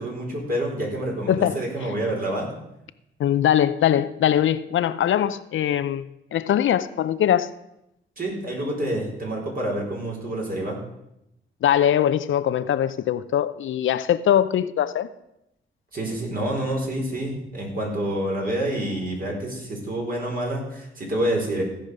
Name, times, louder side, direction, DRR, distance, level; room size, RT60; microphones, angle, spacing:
voice 1, 0.0-2.5 8.2-10.8 15.9-21.6, right 1 dB, 45° right, 4.4 m, -27 dB
voice 2, 1.3-1.6 3.2-7.5 11.6-15.1, left 10 dB, 70° left, 0.6 m, -22 dB
15.5 x 5.2 x 6.5 m
cardioid pair, 70°, 21 cm